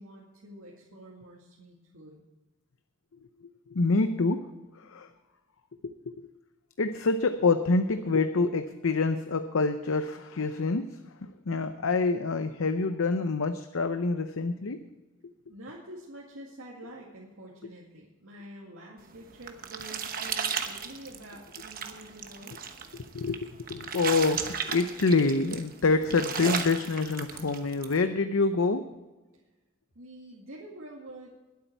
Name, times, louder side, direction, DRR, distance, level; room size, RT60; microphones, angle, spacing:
voice 1, 0.0-2.3 15.5-22.6 29.3-29.4 29.9-31.4, right 1 dB, 80° right, -3 dB, 2.1 m, -47 dB
voice 2, 3.7-4.5 4.8-5.1 5.8-6.3 6.8-11.0 11.5-14.8 22.9-28.8, left 3 dB, 75° left, 9 dB, 0.7 m, -26 dB
sound 1, 19.1-28.0, right 6 dB, 40° right, 1.1 m, -35 dB
21.0 x 8.4 x 4.5 m, 1.2 s
head